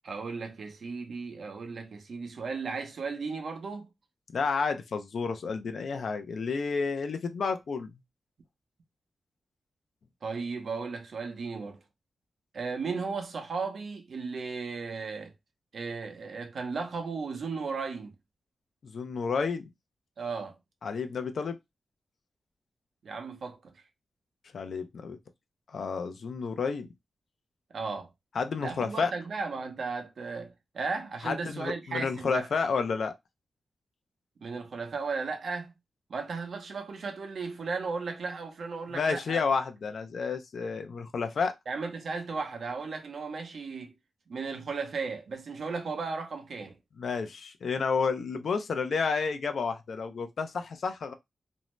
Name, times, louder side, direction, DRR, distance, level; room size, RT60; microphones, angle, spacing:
voice 1, 0.0-3.9 10.2-11.8 12.5-15.3 15.7-18.1 20.2-20.6 23.0-23.6 27.7-28.1 28.6-32.5 34.4-35.7 36.1-39.4 41.7-43.9 44.3-46.8, right 4 dB, 70° right, 0.7 m, -35 dB
voice 2, 4.3-7.9 18.8-19.7 20.8-21.6 24.5-25.2 25.7-26.9 28.3-29.1 31.2-33.1 38.9-41.5 47.0-51.1, left 5 dB, 75° left, 0.4 m, -30 dB
2.6 x 2.1 x 3.0 m
cardioid pair, 65°, 0 cm